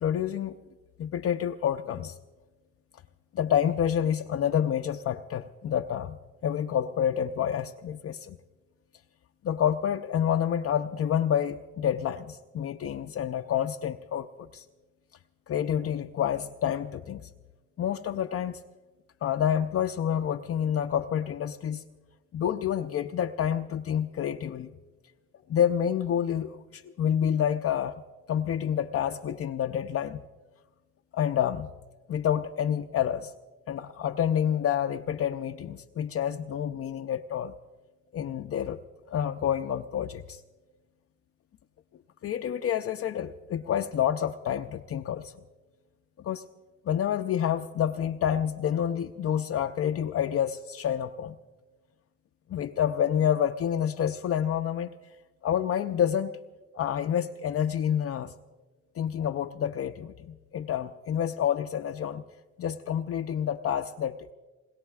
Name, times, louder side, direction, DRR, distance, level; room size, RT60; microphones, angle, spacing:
voice 1, 0.0-0.6 1.0-2.1 3.3-6.2 6.4-8.4 9.4-14.6 15.5-17.3 17.8-18.6 19.2-21.8 22.3-24.7 25.5-27.9 28.3-30.2 31.1-31.7 32.1-33.3 33.7-37.5 38.1-38.8 39.1-40.4 42.2-45.3 46.2-46.4 46.9-51.4 52.5-54.9 55.4-56.4 56.7-58.3 59.0-62.2 62.6-64.3, left 9 dB, 50° left, 6 dB, 0.5 m, -28 dB
28.5 x 21.0 x 2.4 m, 1.2 s
cardioid pair, 90°, 30 cm